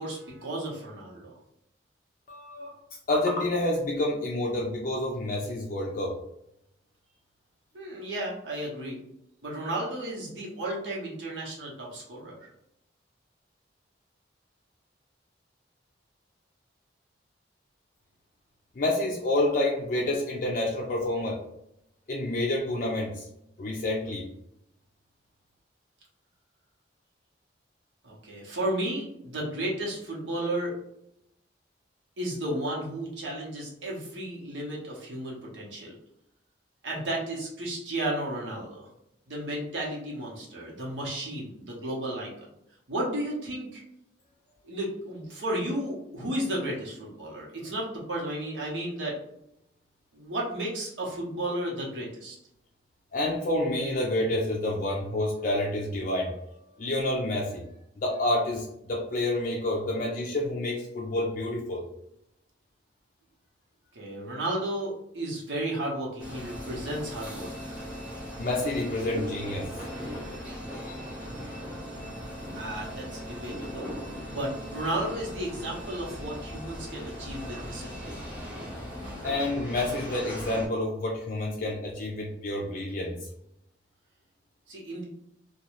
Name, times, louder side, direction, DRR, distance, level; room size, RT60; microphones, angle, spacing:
voice 1, 0.0-1.4 7.7-9.0 9.4-12.5 28.0-30.7 32.2-36.0 36.8-38.9 39.3-42.5 42.9-43.8 44.6-49.2 50.1-52.4 63.9-67.8 72.5-73.9 74.3-78.2 84.7-85.0, right 1 dB, 90° right, -4 dB, 0.9 m, -33 dB
voice 2, 2.3-2.8 3.1-6.1 18.8-21.4 22.1-23.3 23.6-24.3 53.1-57.6 58.0-61.9 68.4-69.7 79.2-83.2, left 1 dB, 45° left, -1 dB, 0.4 m, -28 dB
sound 1, 66.2-80.7, equal, 5° right, 0.8 m, -39 dB
2.5 x 2.3 x 3.0 m, 0.78 s
head